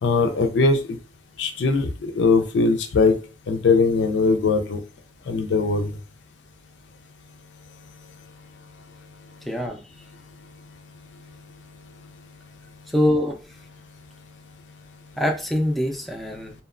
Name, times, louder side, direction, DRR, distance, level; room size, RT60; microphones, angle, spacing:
voice 1, 0.0-1.0 1.4-3.2 3.5-4.8 5.3-5.9, left 4 dB, 85° left, 7 dB, 0.4 m, -20 dB
voice 2, 9.5-9.8 12.9-13.4 15.2-16.5, left 1 dB, ahead, 2 dB, 0.3 m, -23 dB
2.7 x 2.1 x 2.4 m, 0.37 s
head